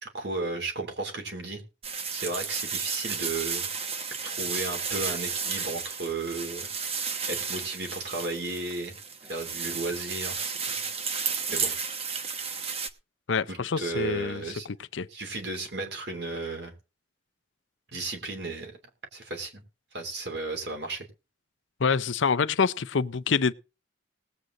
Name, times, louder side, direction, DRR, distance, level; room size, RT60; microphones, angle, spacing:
voice 1, 0.0-1.6 2.1-3.7 4.2-6.7 7.3-9.0 9.3-10.8 11.5-11.7 13.5-14.7 15.1-16.7 17.9-18.7 19.1-19.6 19.9-21.1, right 3 dB, 60° right, 3.1 m, -34 dB
sound 1, 1.8-12.9, right 6 dB, 30° right, 1.0 m, -33 dB
voice 2, 13.3-15.1 21.8-23.5, left 5 dB, 80° left, 0.6 m, -26 dB
19.0 x 8.0 x 3.8 m
head